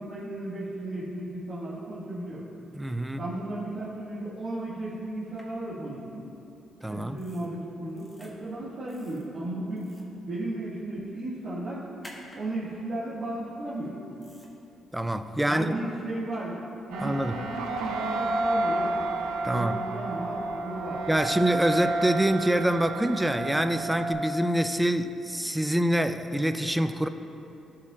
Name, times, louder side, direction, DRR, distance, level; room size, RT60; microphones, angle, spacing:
voice 1, 0.0-2.5 3.2-6.3 6.9-9.9 10.3-11.8 12.3-14.0 15.5-16.6 16.9-18.9 19.5-21.0, right 1 dB, 55° right, -11 dB, 1.8 m, -35 dB
voice 2, 2.8-3.2 6.8-7.2 14.9-15.7 17.0-17.4 19.4-19.8 21.1-27.1, right 1 dB, 5° right, 9 dB, 0.4 m, -26 dB
sound 1, 5.4-5.5 7.2-7.5 7.9-8.3 8.9-9.3 9.7-10.1 12.0-12.4 14.2-14.5, equal, 10° left, 1.4 m, -50 dB
sound 2, 16.9-24.1, right 2 dB, 85° right, 0.6 m, -31 dB
14.5 x 5.0 x 2.4 m, 2.9 s
cardioid pair, 90°, 0 cm